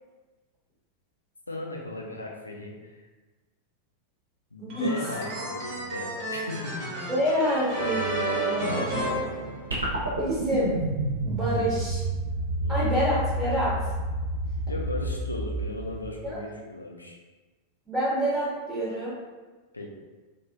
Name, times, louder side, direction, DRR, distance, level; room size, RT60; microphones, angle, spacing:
voice 1, 1.5-3.0 4.5-7.1 8.7-9.5 11.5-11.8 12.6-12.8 14.6-17.2 19.7-19.9, left 2 dB, 80° left, 0 dB, 0.4 m, -37 dB
sound 1, 4.7-10.1, right 1 dB, 40° right, 0.7 m, -31 dB
voice 2, 7.1-8.9 10.2-10.7 11.2-12.0 12.7-13.7 16.2-16.4 17.9-19.1, equal, 10° right, -10 dB, 1.0 m, -27 dB
sound 2, 9.7-16.2, right 1 dB, 80° right, 0.7 m, -29 dB
2.9 x 2.6 x 2.3 m, 1.3 s
figure-of-eight pair, 90°, 0 cm